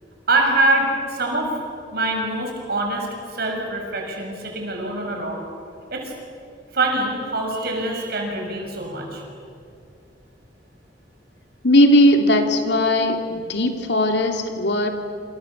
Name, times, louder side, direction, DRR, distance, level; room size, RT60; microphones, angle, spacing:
voice 1, 0.3-1.6 1.9-5.4 5.9-6.0 6.7-9.3, right 2 dB, 60° right, 1 dB, 6.9 m, -24 dB
voice 2, 11.6-14.9, left 1 dB, 65° left, 4 dB, 3.0 m, -18 dB
28.5 x 27.5 x 7.4 m, 2.5 s
head